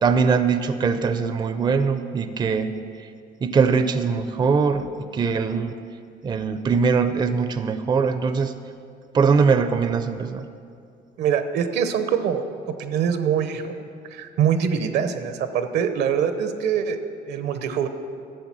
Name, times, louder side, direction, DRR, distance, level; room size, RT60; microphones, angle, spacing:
voice 1, 0.0-3.1 3.4-5.8 6.2-8.6 9.1-10.5, right 5 dB, 25° right, 10 dB, 0.5 m, -22 dB
voice 2, 11.2-13.8 14.1-17.0 17.3-17.9, right 8 dB, 80° right, 9 dB, 0.9 m, -24 dB
13.0 x 7.8 x 6.1 m, 2.4 s
cardioid pair, 110°, 17 cm